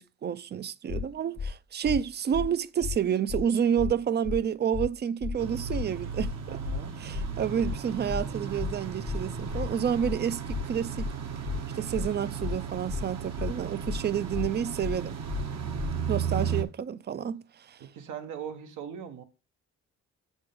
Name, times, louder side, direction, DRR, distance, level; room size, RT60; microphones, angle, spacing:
voice 1, 0.0-6.3 7.0-11.1 11.7-15.2 16.1-17.8, right 8 dB, 35° right, 0.4 m, -29 dB
sound 1, 0.9-1.0 1.4-1.5 1.8-2.0 2.3-2.5 2.8-3.0 3.3-3.4 3.8-3.9 4.2-4.4 4.7-4.9 5.2-5.4 5.7-5.8 6.2-6.3 6.6-6.8 7.1-7.3 7.6-7.8 8.1-8.2 8.6-8.7 9.0-9.2 9.5-9.7 10.0-10.2 10.5-10.6 11.0-11.1 11.4-11.6 11.9-12.1 12.4-12.6 12.9-13.0 13.4-13.5 13.8-14.0 14.3-14.5 14.8-15.0 15.3-15.4 15.8-15.9, left 6 dB, 30° left, 0.5 m, -32 dB
sound 2, 5.4-16.6, right 7 dB, 60° right, 1.0 m, -35 dB
voice 2, 6.5-7.0 17.8-19.2, right 8 dB, 80° right, 1.2 m, -40 dB
7.6 x 6.3 x 3.6 m
cardioid pair, 90°, 30 cm